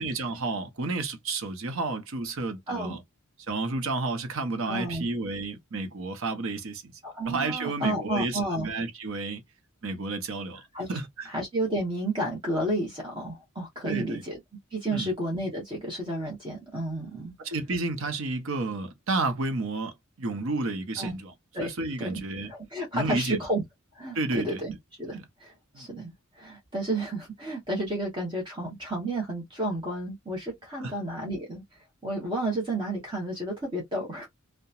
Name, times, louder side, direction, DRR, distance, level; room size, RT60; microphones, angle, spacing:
voice 1, 0.0-3.0 3.5-6.9 7.2-9.4 9.8-10.6 10.9-11.3 13.9-14.2 14.9-15.1 17.4-21.3 21.6-22.5 22.9-23.4 24.1-24.6 25.7-25.9 30.8-30.9, right 3 dB, 65° right, 0.7 m, -31 dB
voice 2, 2.7-3.0 4.7-5.1 7.0-8.7 10.7-10.9 11.3-14.4 14.7-17.3 21.0-21.1 21.5-21.7 22.0-22.2 22.5-23.6 23.9-31.6 32.0-34.3, right 1 dB, 20° right, 0.8 m, -31 dB
2.8 x 2.1 x 2.3 m
head